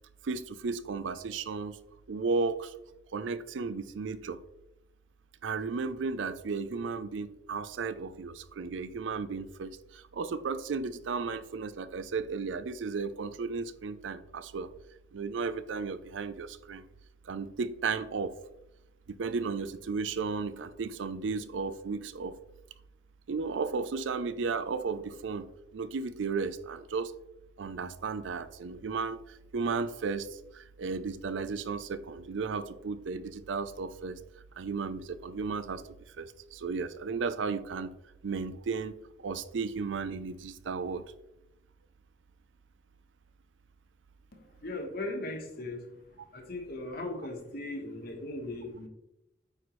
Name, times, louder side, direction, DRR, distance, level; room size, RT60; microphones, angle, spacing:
voice 1, 0.2-1.8 2.1-2.7 3.1-4.4 5.4-14.7 15.1-16.8 17.3-18.3 19.1-22.3 23.3-25.5 25.7-27.1 27.6-30.3 30.5-34.2 34.6-35.8 36.2-37.9 38.2-38.9 39.2-41.0, right 4 dB, 85° right, 13 dB, 0.5 m, -34 dB
voice 2, 44.6-45.8 46.3-48.9, left 2 dB, 55° left, 3 dB, 1.3 m, -38 dB
8.8 x 4.2 x 3.2 m, 0.90 s
head